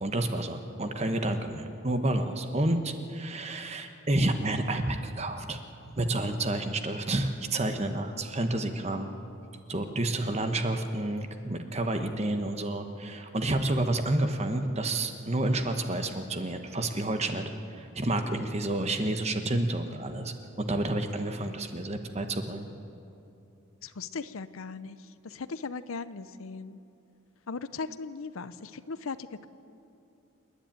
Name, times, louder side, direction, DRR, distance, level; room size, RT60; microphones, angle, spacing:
voice 1, 0.0-5.6 6.0-9.1 9.7-17.4 17.7-22.7, right 1 dB, 30° right, 7 dB, 1.1 m, -30 dB
voice 2, 23.8-26.8 27.5-29.5, left 4 dB, 80° left, 14 dB, 0.7 m, -38 dB
27.5 x 10.5 x 8.9 m, 2.8 s
head